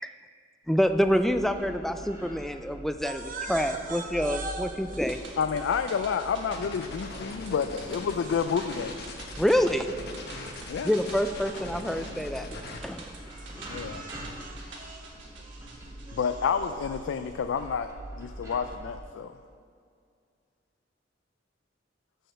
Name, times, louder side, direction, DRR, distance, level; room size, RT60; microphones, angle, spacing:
voice 1, 0.7-5.2 9.4-9.9 10.8-12.5 12.8-13.1, equal, ahead, 0.3 m, -26 dB
sound 1, 0.7-19.0, right 1 dB, 15° right, 1.3 m, -44 dB
voice 2, 3.0-5.3 8.8-8.9 10.3-12.0 13.4-16.2, right 3 dB, 45° right, 0.8 m, -42 dB
sound 2, 4.9-17.3 17.6-17.7, right 3 dB, 90° right, 1.4 m, -47 dB
voice 3, 5.4-9.0 10.7-10.9 13.7-14.0 16.1-19.3, left 6 dB, 80° left, 0.3 m, -29 dB
sound 3, 6.5-12.8, left 3 dB, 60° left, 1.0 m, -42 dB
6.4 x 6.3 x 6.6 m
head